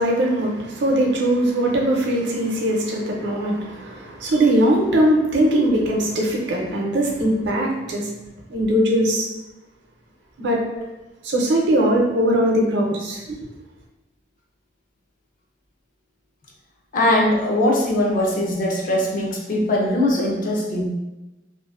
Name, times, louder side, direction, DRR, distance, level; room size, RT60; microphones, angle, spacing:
voice 1, 0.0-8.1 8.5-9.3 10.4-10.6 11.2-13.4, right 1 dB, 65° right, -1 dB, 0.5 m, -20 dB
voice 2, 16.9-20.9, left 1 dB, 45° left, -1 dB, 0.5 m, -21 dB
2.5 x 2.0 x 2.4 m, 1.0 s
head